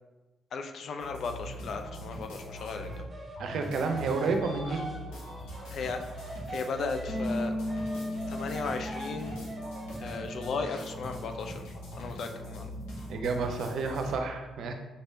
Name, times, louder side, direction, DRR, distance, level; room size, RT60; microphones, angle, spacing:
voice 1, 0.5-3.0 4.6-4.8 5.7-6.0 6.5-7.5 8.3-9.4 10.0-12.7, left 4 dB, 60° left, 6 dB, 0.5 m, -36 dB
sound 1, 1.0-3.1 3.4-14.2, equal, 80° left, 1.0 m, -42 dB
sound 2, 2.7-7.3 7.7-10.9, right 2 dB, 30° right, 0.9 m, -43 dB
voice 2, 3.4-4.8 13.1-14.7, right 4 dB, 65° right, 5 dB, 0.5 m, -30 dB
sound 3, 7.1-11.6 11.9-13.3, left 1 dB, 40° left, 1.0 m, -38 dB
5.3 x 3.3 x 2.7 m, 1.1 s
hypercardioid pair, 50°, 0 cm